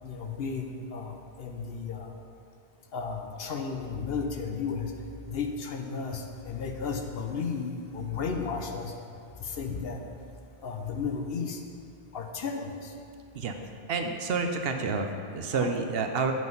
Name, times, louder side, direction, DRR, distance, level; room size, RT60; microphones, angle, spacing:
voice 1, 0.0-2.1 2.9-4.9 5.3-8.9 9.4-10.0 10.6-11.6 12.1-12.9 15.5-15.7, left 5 dB, 65° left, 4 dB, 0.9 m, -34 dB
voice 2, 13.9-16.3, right 4 dB, 65° right, 5 dB, 0.8 m, -29 dB
7.6 x 6.2 x 5.4 m, 2.4 s
omnidirectional pair, 1.1 m